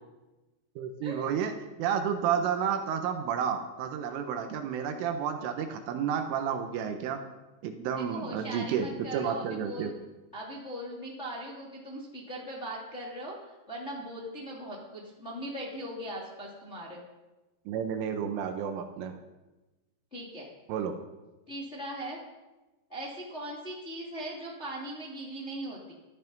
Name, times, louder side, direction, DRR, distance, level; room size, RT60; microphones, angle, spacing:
voice 1, 0.8-1.5 1.8-7.2 7.6-8.9 9.1-9.9 17.7-19.2 20.7-21.0, right 8 dB, 75° right, 6 dB, 3.6 m, -31 dB
voice 2, 8.0-9.9 10.3-17.0 20.1-20.5 21.5-22.2 22.9-25.9, right 1 dB, 20° left, -3 dB, 1.8 m, -39 dB
14.5 x 13.0 x 5.5 m, 1.1 s
omnidirectional pair, 5.9 m